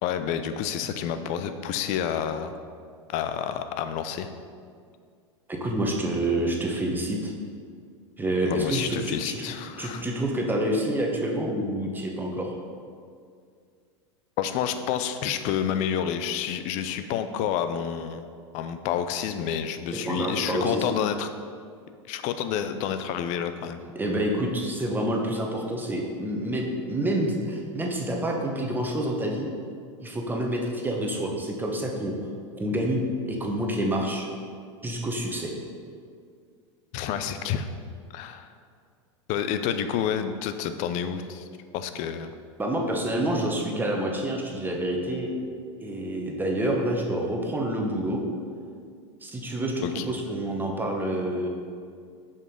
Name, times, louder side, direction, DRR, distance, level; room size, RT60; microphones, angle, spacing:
voice 1, 0.0-2.5 3.1-4.3 8.4-10.0 14.4-18.2 18.5-21.3 22.1-23.8 36.9-37.7 38.1-38.5 39.3-41.5 41.7-42.3 49.8-50.0, left 8 dB, 50° left, 9 dB, 0.6 m, -29 dB
voice 2, 5.5-7.3 8.2-9.4 9.8-12.5 20.0-20.8 23.9-29.5 30.0-32.1 32.6-34.3 34.8-35.5 42.6-45.3 45.8-48.2 49.2-51.5, right 1 dB, 10° right, 0 dB, 1.2 m, -28 dB
6.7 x 5.5 x 5.3 m, 2.2 s
hypercardioid pair, 100°, 16 cm